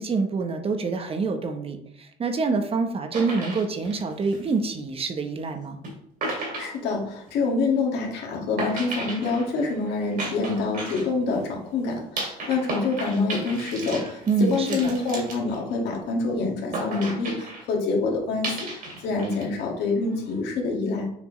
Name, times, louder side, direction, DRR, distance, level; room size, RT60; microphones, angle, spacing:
voice 1, 0.0-5.8 14.3-14.9, right 4 dB, 35° right, 6 dB, 0.8 m, -26 dB
sound 1, 3.1-4.9 5.8-5.9 6.2-7.6 8.6-11.5 12.2-16.1 16.7-17.6 18.4-19.4 19.8-20.4, right 2 dB, 55° right, 2.5 m, -34 dB
voice 2, 6.3-21.1, left 3 dB, 80° left, 0 dB, 1.9 m, -26 dB
7.1 x 4.3 x 3.0 m, 0.73 s
cardioid pair, 110°, 17 cm